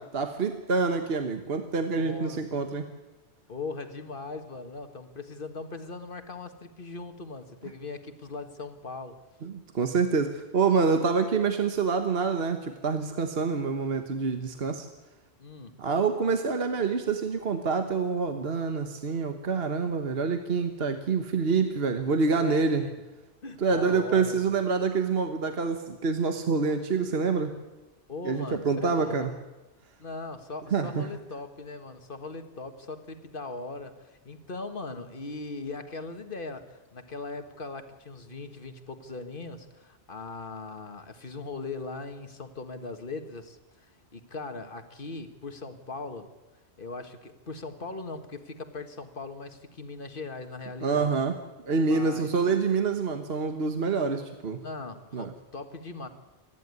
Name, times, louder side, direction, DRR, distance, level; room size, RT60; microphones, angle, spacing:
voice 1, 0.1-2.9 9.4-14.9 15.8-22.8 23.6-27.5 28.2-29.3 30.7-31.1 50.8-51.4 51.7-54.6 55.1-55.3, right 4 dB, 60° right, 6 dB, 1.5 m, -26 dB
voice 2, 1.8-2.6 3.5-9.2 15.4-15.8 22.3-22.9 23.4-24.7 28.1-29.3 30.0-46.3 46.8-51.2 51.9-52.3 54.6-56.1, left 3 dB, 50° left, 7 dB, 1.8 m, -39 dB
28.0 x 11.0 x 9.6 m, 1.1 s
omnidirectional pair, 1.2 m